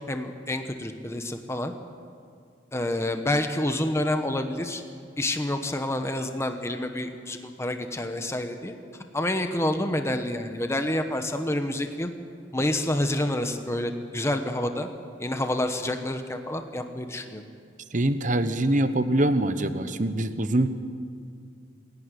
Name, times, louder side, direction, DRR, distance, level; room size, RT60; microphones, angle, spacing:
voice 1, 0.0-1.7 2.7-4.8 5.2-8.7 9.1-12.1 12.5-14.9 15.2-17.4, left 1 dB, 15° left, 6 dB, 1.1 m, -28 dB
voice 2, 17.9-20.7, right 1 dB, 40° right, 10 dB, 1.1 m, -24 dB
27.0 x 11.0 x 9.9 m, 2.3 s
head